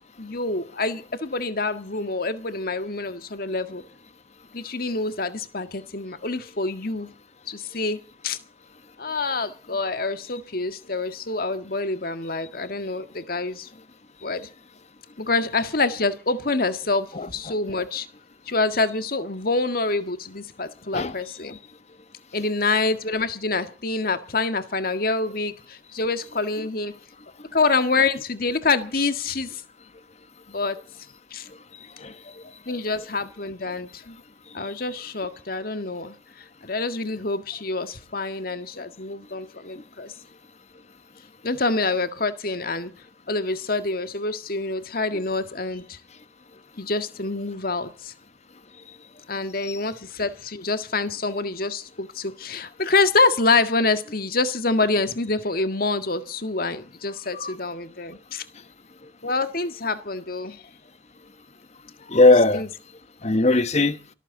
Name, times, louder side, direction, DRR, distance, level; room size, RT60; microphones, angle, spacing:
voice 1, 0.2-3.8 4.5-7.1 7.5-8.4 9.0-13.7 14.2-14.5 15.2-18.1 18.5-21.6 22.3-26.9 27.5-29.6 30.5-30.8 31.3-31.5 32.6-34.2 34.5-40.1 41.4-42.9 43.3-46.0 46.8-48.1 49.3-58.4 59.2-60.6 62.5-62.7, left 3 dB, 55° left, 1.8 m, -26 dB
voice 2, 62.1-62.6 63.2-64.0, left 2 dB, 40° left, 1.2 m, -19 dB
24.5 x 13.5 x 3.9 m
head